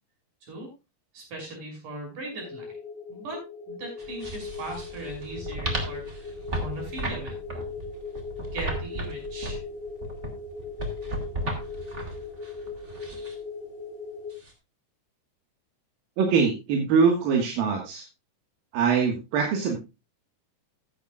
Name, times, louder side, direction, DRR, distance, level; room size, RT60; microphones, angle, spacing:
voice 1, 1.1-2.7 3.1-7.4 8.5-9.6, right 1 dB, 65° right, 0 dB, 7.5 m, -39 dB
sound 1, 2.3-14.3, left 4 dB, 45° left, 3.8 m, -39 dB
sound 2, 4.0-13.3 14.3-14.5, right 1 dB, 25° right, 1.8 m, -35 dB
voice 2, 16.2-18.1 18.7-19.8, right 5 dB, 90° right, 1 dB, 3.4 m, -23 dB
14.5 x 10.5 x 2.4 m, 0.26 s
omnidirectional pair, 4.0 m